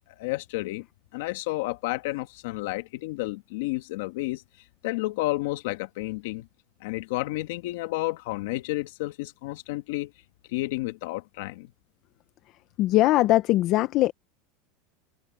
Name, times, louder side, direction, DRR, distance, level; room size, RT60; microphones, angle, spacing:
voice 1, 0.2-0.9 1.1-4.4 4.8-6.5 6.8-10.1 10.5-11.7, left 19 dB, 70° left, 1.6 m, -31 dB
voice 2, 12.8-14.1, left 16 dB, 45° left, 0.8 m, -21 dB
supercardioid pair, 150°, 0 cm